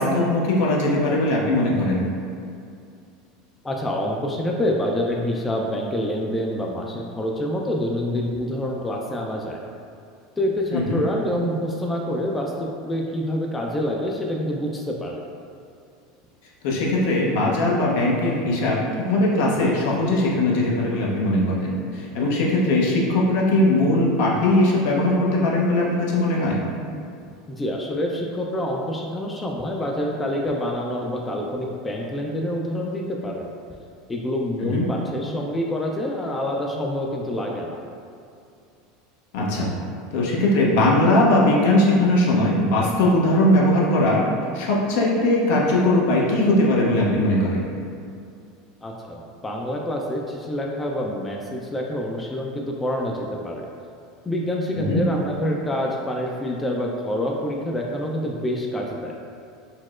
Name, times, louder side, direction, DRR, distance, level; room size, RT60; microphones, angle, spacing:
voice 1, 0.0-2.0 10.7-11.0 16.6-26.6 34.7-34.9 39.3-39.7 40.1-44.2 44.5-47.6 54.7-55.0, left 1 dB, 70° left, -3 dB, 0.6 m, -20 dB
voice 2, 3.6-9.6 10.4-15.2 27.6-33.5 34.1-37.8 48.8-53.7 54.3-59.1, left 1 dB, 15° left, -1 dB, 0.3 m, -27 dB
4.1 x 2.0 x 2.4 m, 2.4 s
supercardioid pair, 105°, 0 cm